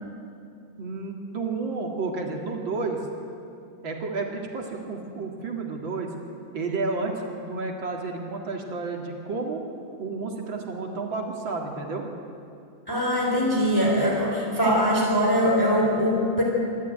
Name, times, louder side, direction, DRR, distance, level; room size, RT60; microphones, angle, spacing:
voice 1, 0.8-3.0 3.8-6.1 6.5-9.6 10.0-12.0, right 3 dB, 70° right, 1 dB, 2.8 m, -31 dB
voice 2, 12.9-16.4, equal, 10° left, -2 dB, 3.7 m, -22 dB
25.5 x 12.0 x 9.1 m, 2.5 s
omnidirectional pair, 2.2 m